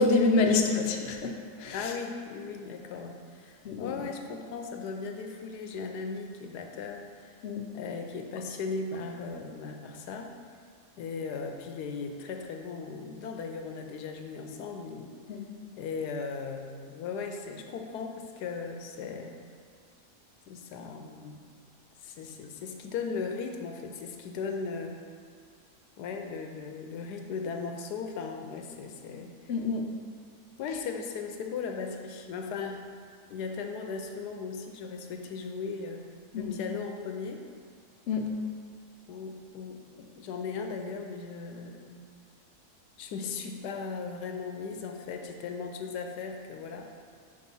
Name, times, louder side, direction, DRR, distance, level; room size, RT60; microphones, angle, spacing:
voice 1, 0.0-1.8 3.6-3.9 7.4-7.6 15.3-15.5 29.5-29.8 36.3-36.6 38.1-38.3, left 3 dB, 65° left, 2 dB, 0.7 m, -26 dB
voice 2, 1.7-7.3 7.7-10.3 11.0-15.1 15.8-19.4 20.5-21.4 22.0-25.0 26.0-29.3 30.6-32.8 33.3-36.1 36.3-37.4 39.1-42.0 43.0-46.8, left 5 dB, 85° left, 4 dB, 1.1 m, -37 dB
5.2 x 3.9 x 5.4 m, 2.1 s
omnidirectional pair, 1.7 m